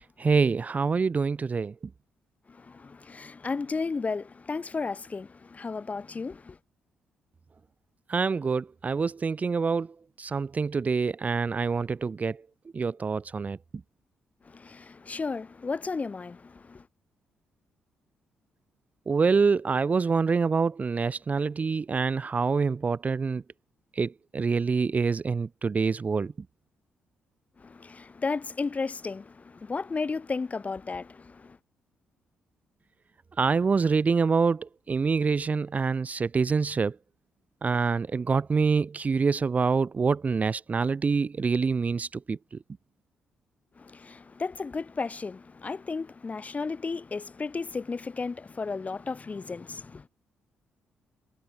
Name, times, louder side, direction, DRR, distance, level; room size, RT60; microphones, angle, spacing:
voice 1, 0.0-1.7 8.1-12.4 12.7-13.6 19.1-23.4 24.0-26.3 33.4-37.0 37.6-42.6, right 5 dB, 40° right, 0.5 m, -26 dB
voice 2, 2.5-6.6 14.4-16.8 27.6-31.6 43.8-50.0, left 4 dB, 35° left, 1.6 m, -34 dB
hypercardioid pair, 50°, 4 cm